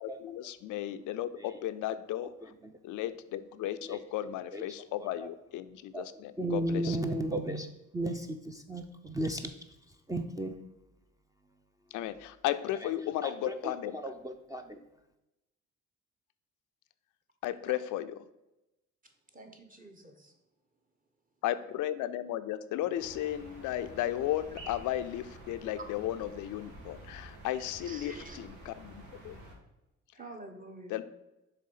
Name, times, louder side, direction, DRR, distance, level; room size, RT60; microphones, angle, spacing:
voice 1, 0.0-2.3 2.8-7.0 11.9-14.0 17.4-18.1 21.4-29.4 30.9-31.0, left 12 dB, 90° left, 11 dB, 0.5 m, -35 dB
voice 2, 5.0-5.3 5.9-6.1 6.4-7.7 7.9-9.5 10.1-10.6 12.7-14.8, right 1 dB, 10° right, 5 dB, 0.5 m, -35 dB
voice 3, 19.3-20.3 25.8-25.9 27.8-28.4 30.1-31.0, right 2 dB, 25° right, 4 dB, 1.2 m, -47 dB
sound 1, 22.9-29.5, right 1 dB, 80° right, 2.0 m, -50 dB
6.6 x 3.5 x 5.6 m, 0.94 s
cardioid pair, 90°, 30 cm